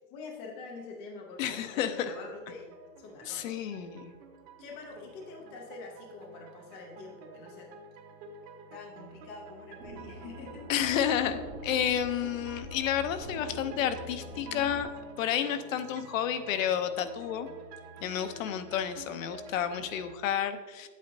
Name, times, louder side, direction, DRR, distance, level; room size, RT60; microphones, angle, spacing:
voice 1, 0.1-2.7 3.0-3.9 4.6-7.7 8.7-10.7, left 3 dB, 15° left, 0 dB, 0.4 m, -46 dB
voice 2, 1.4-2.1 3.3-4.1 10.7-14.9 15.2-17.5 18.0-20.9, left 9 dB, 55° left, 10 dB, 0.7 m, -31 dB
sound 1, 1.4-20.2, right 3 dB, 40° right, 1.2 m, -50 dB
sound 2, 9.8-14.8, equal, 60° right, 1.7 m, -44 dB
9.2 x 8.4 x 2.7 m, 1.3 s
supercardioid pair, 165°, 47 cm